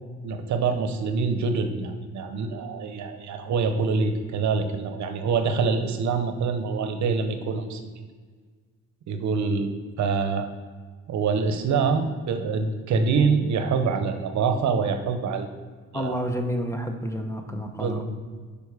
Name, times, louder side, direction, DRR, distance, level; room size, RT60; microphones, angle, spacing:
voice 1, 0.2-7.8 9.1-10.5 11.1-15.5 15.9-16.2 17.5-18.0, right 5 dB, 65° right, 7 dB, 0.8 m, -25 dB
voice 2, 15.9-18.0, equal, 10° left, 5 dB, 0.7 m, -29 dB
6.9 x 5.2 x 4.8 m, 1.5 s
cardioid pair, 90°, 30 cm